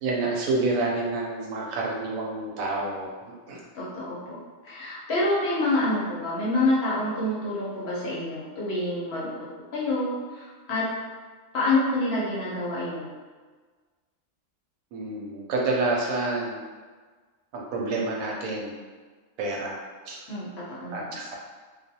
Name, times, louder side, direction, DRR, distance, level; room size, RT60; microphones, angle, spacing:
voice 1, 0.0-3.1 3.5-3.6 14.9-16.6 17.5-18.7 19.4-19.8 20.0-20.2 20.9-21.4, right 2 dB, 85° right, -2 dB, 1.0 m, -28 dB
voice 2, 3.7-4.4 4.6-9.3 9.7-10.9 11.5-13.1 20.3-21.2, left 2 dB, 60° left, -7 dB, 0.8 m, -27 dB
2.3 x 2.2 x 2.7 m, 1.4 s
omnidirectional pair, 1.4 m